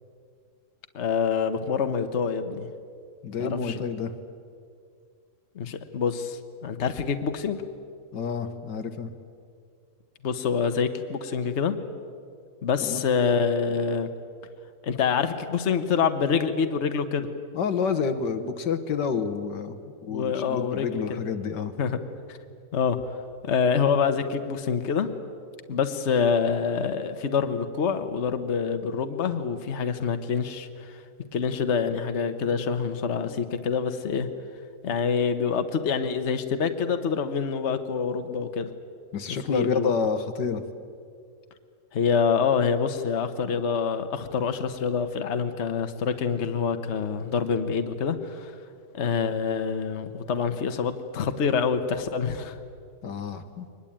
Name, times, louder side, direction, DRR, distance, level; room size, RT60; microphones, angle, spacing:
voice 1, 0.9-2.7 3.4-3.8 5.5-7.6 10.2-11.8 12.6-14.1 14.8-17.3 20.1-21.0 21.8-22.0 22.3-22.4 22.7-23.2 23.4-25.1 25.7-31.0 31.3-34.3 34.8-38.7 39.3-39.9 41.9-48.5 48.9-52.6, left 6 dB, 45° left, 8 dB, 1.3 m, -26 dB
voice 2, 3.2-4.1 8.1-9.1 12.8-13.0 17.5-21.7 39.1-40.6 53.0-53.7, left 5 dB, 85° left, 9 dB, 1.9 m, -29 dB
23.0 x 20.5 x 8.9 m, 2.3 s
omnidirectional pair, 1.8 m